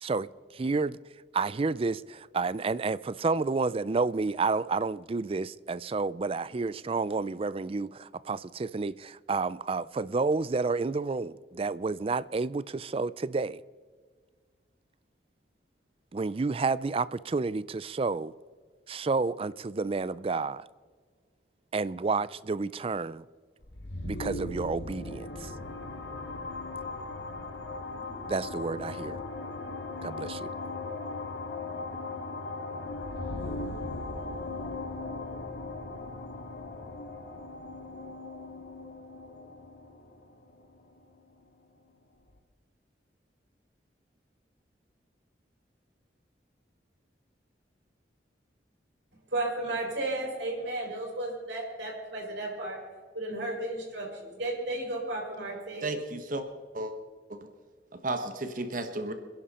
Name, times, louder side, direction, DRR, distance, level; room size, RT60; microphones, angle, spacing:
voice 1, 0.5-1.0 1.3-13.6 16.1-18.3 18.9-20.7 21.7-23.3 24.0-25.5 28.3-29.2 30.0-30.5, right 4 dB, 30° right, 0.4 m, -30 dB
sound 1, 23.6-41.3, left 2 dB, 80° left, 2.1 m, -38 dB
voice 2, 49.3-52.8 53.1-55.9, right 2 dB, 80° right, 5.3 m, -33 dB
voice 3, 55.8-56.4 56.7-56.9 57.3-57.4 58.0-59.1, right 2 dB, 50° right, 1.3 m, -33 dB
27.0 x 11.0 x 4.3 m
head